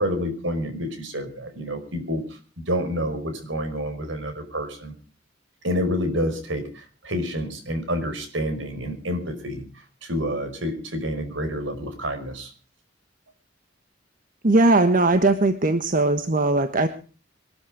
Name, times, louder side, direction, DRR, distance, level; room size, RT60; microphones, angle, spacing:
voice 1, 0.0-4.9 5.6-9.6 10.0-12.5, equal, 70° right, 8 dB, 5.2 m, -28 dB
voice 2, 14.4-16.9, right 2 dB, 45° right, 8 dB, 1.4 m, -19 dB
22.0 x 13.5 x 4.9 m, 0.38 s
head